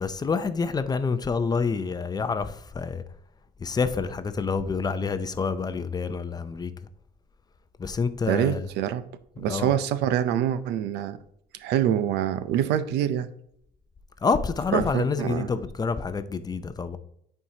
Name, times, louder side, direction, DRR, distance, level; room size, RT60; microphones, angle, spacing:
voice 1, 0.0-3.0 3.6-6.7 7.8-8.7 9.5-9.7 14.2-17.0, left 5 dB, 25° left, 0.5 m, -27 dB
voice 2, 8.3-9.0 9.4-11.2 11.6-13.3 14.7-15.5, right 10 dB, 85° right, 0.5 m, -25 dB
8.5 x 4.6 x 2.8 m
cardioid pair, 110°, 17 cm